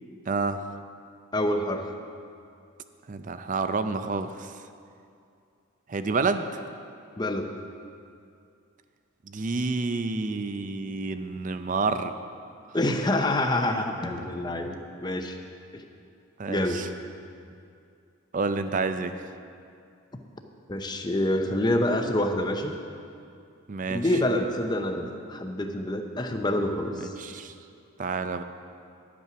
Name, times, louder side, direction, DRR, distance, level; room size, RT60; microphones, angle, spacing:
voice 1, 0.3-0.8 3.1-4.6 5.9-6.6 9.3-12.1 12.7-12.8 16.4-16.9 18.3-19.3 23.7-24.1 26.9-27.5 28.0-28.4, right 4 dB, 40° right, 10 dB, 0.4 m, -29 dB
voice 2, 1.3-1.9 7.2-7.5 12.7-15.4 15.7-15.8 16.5-16.8 20.7-22.8 23.9-27.1, left 1 dB, 20° left, 5 dB, 0.7 m, -27 dB
11.0 x 8.4 x 5.8 m, 2.5 s
head